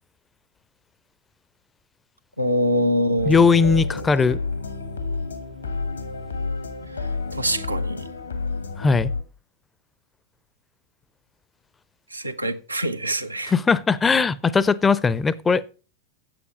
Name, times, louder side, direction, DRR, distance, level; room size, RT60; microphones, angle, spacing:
voice 1, 2.4-4.1 7.3-8.1 12.1-13.5, equal, 85° right, 0.9 m, -25 dB
sound 1, 3.2-9.2, left 4 dB, 75° left, 1.5 m, -30 dB
voice 2, 3.3-4.4 8.8-9.1 13.5-15.6, left 5 dB, 15° left, 0.5 m, -19 dB
8.2 x 7.9 x 6.0 m
figure-of-eight pair, 90°, 0 cm